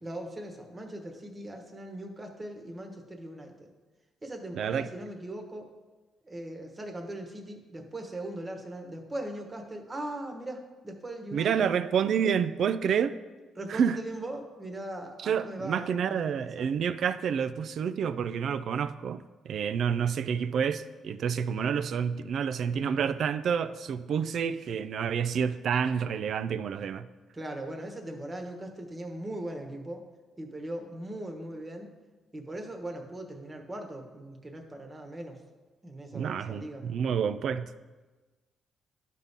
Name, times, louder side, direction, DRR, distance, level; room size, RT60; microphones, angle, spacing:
voice 1, 0.0-3.7 4.2-5.7 6.2-11.8 13.5-16.7 27.3-30.0 30.4-31.9 32.3-35.4 35.8-36.8, right 1 dB, 25° right, 4 dB, 1.2 m, -40 dB
voice 2, 4.5-4.9 11.3-13.2 13.7-14.0 15.2-27.1 36.1-37.7, right 7 dB, 65° right, 14 dB, 0.4 m, -29 dB
11.5 x 4.1 x 3.6 m, 1.2 s
cardioid pair, 90°, 0 cm